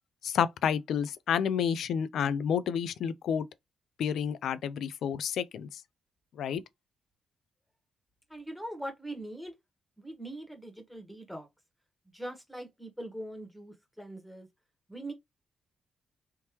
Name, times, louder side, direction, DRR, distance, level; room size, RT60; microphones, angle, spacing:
voice 1, 0.2-3.5 4.0-5.7 6.4-6.6, left 8 dB, 75° left, 0.4 m, -30 dB
voice 2, 8.3-9.5 10.0-11.5 12.1-14.5 14.9-15.1, right 1 dB, ahead, 1.3 m, -41 dB
3.5 x 2.8 x 3.0 m
cardioid pair, 90°, 0 cm